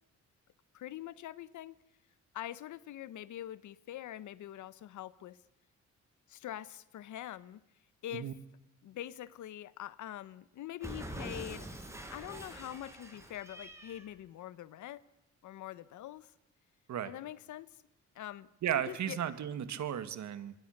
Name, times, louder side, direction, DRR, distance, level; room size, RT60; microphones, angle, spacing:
voice 1, 0.7-1.8 2.3-5.4 6.3-7.6 8.0-8.3 8.8-11.7 12.1-15.1 15.4-16.3 17.0-17.7 18.1-18.5 18.9-19.2, left 12 dB, 75° left, 1.1 m, -44 dB
Cat, 10.8-14.1, right 1 dB, 10° right, 5.3 m, -45 dB
voice 2, 18.6-20.5, right 10 dB, 65° right, 2.2 m, -35 dB
27.0 x 22.5 x 6.8 m
cardioid pair, 90°, 30 cm